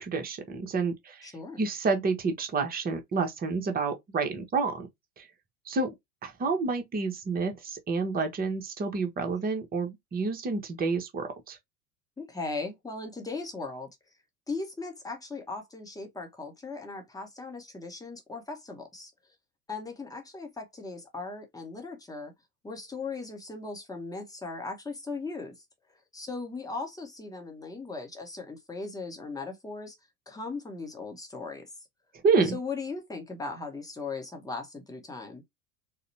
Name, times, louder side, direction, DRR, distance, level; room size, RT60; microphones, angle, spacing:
voice 1, 0.0-1.3 1.6-4.9 5.2-5.3 5.7-5.9 6.2-11.6 32.2-32.6, right 4 dB, 20° right, 0.8 m, -29 dB
voice 2, 1.2-1.6 12.2-13.9 14.5-19.1 19.7-22.3 22.6-25.6 26.1-29.9 30.3-31.7 32.4-35.4, left 3 dB, 10° left, 0.9 m, -38 dB
3.9 x 2.1 x 2.6 m
figure-of-eight pair, 80°, 47 cm